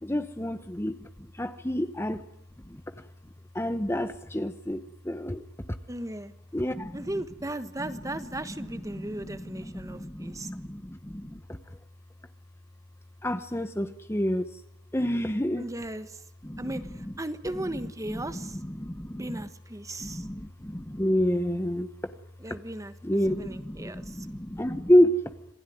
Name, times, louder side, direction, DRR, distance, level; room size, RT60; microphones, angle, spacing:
voice 1, 0.0-2.2 2.7-3.1 3.5-5.5 6.5-7.1 7.8-7.9 8.9-11.8 13.2-14.6 14.9-15.7 16.4-17.1 18.1-19.4 20.0-21.9 23.0-25.3, equal, 15° left, 10 dB, 1.0 m, -29 dB
voice 2, 5.9-6.3 6.9-10.5 15.6-16.2 16.6-18.6 19.2-20.3 22.4-24.3, right 1 dB, 20° right, 11 dB, 1.3 m, -37 dB
27.0 x 16.5 x 9.4 m, 0.84 s
head